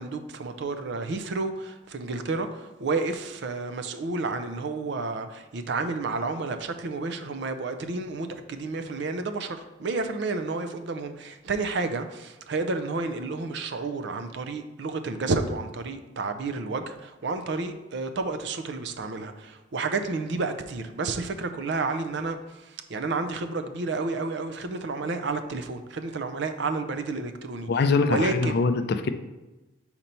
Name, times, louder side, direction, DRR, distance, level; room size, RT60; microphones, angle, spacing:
voice 1, 0.0-27.7 28.1-28.6, right 3 dB, 60° right, 8 dB, 0.5 m, -31 dB
voice 2, 27.7-29.1, left 4 dB, 50° left, 9 dB, 0.4 m, -23 dB
4.3 x 4.3 x 5.3 m, 1.1 s
head